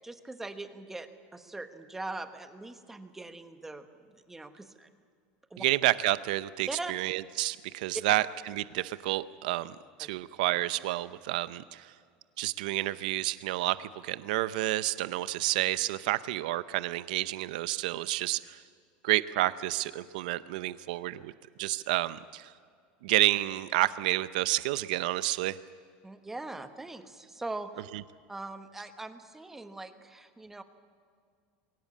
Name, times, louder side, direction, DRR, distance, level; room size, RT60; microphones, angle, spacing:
voice 1, 0.0-4.9 5.5-5.6 6.7-6.9 10.0-10.1 26.0-27.7 28.3-30.6, right 2 dB, 5° right, 8 dB, 1.2 m, -41 dB
voice 2, 5.6-11.9 12.4-18.6 19.0-21.3 21.6-22.5 23.0-25.6, right 17 dB, 75° right, 15 dB, 0.7 m, -30 dB
22.0 x 18.0 x 8.5 m, 2.2 s
supercardioid pair, 155°, 5 cm